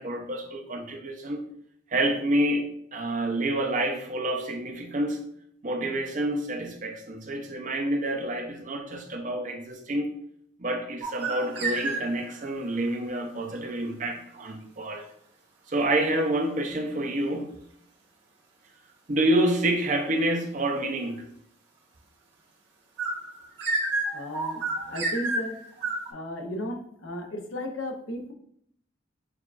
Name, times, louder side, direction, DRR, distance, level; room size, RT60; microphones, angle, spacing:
voice 1, 0.0-1.4 1.9-5.2 5.6-10.1 10.6-15.1 15.7-17.5 19.1-21.3, right 1 dB, 40° right, 4 dB, 0.5 m, -28 dB
sound 1, 11.0-12.4 23.0-26.1, right 2 dB, 60° right, 1.3 m, -30 dB
voice 2, 24.1-25.6 26.1-28.3, equal, 85° left, 3 dB, 0.7 m, -35 dB
6.2 x 2.3 x 2.4 m, 0.68 s
head